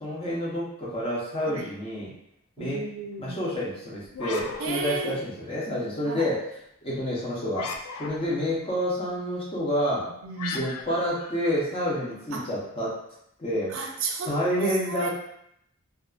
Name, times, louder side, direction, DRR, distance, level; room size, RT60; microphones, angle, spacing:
voice 1, 0.0-2.1 2.6-2.8 3.2-6.5 6.8-10.1 10.5-13.0 13.4-13.9 14.2-15.1, equal, 25° left, -6 dB, 0.7 m, -29 dB
voice 2, 2.6-3.4 4.6-5.2 6.0-6.3 10.2-10.6 12.3-12.5 13.7-15.1, right 4 dB, 65° right, 2 dB, 0.3 m, -34 dB
sound 1, 4.1-5.6 7.5-8.6 10.4-12.2, left 4 dB, 90° left, 0.3 m, -38 dB
2.3 x 2.3 x 2.3 m, 0.75 s
head